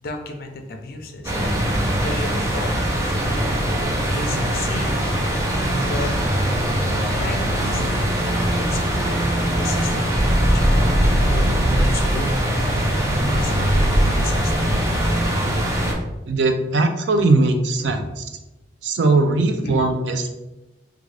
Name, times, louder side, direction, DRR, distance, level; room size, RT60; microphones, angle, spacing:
voice 1, 0.0-1.5 2.0-3.2 4.1-6.3 6.9-7.8 8.6-11.5 11.8-12.6 13.2-14.8 17.9-18.0 19.6-19.8, left 3 dB, 55° left, 4 dB, 0.5 m, -34 dB
sound 1, 1.2-15.9, right 1 dB, 15° right, 0.5 m, -21 dB
voice 2, 16.3-18.3 18.8-20.3, right 3 dB, 85° right, 6 dB, 0.4 m, -19 dB
3.6 x 2.3 x 3.2 m, 1.0 s
head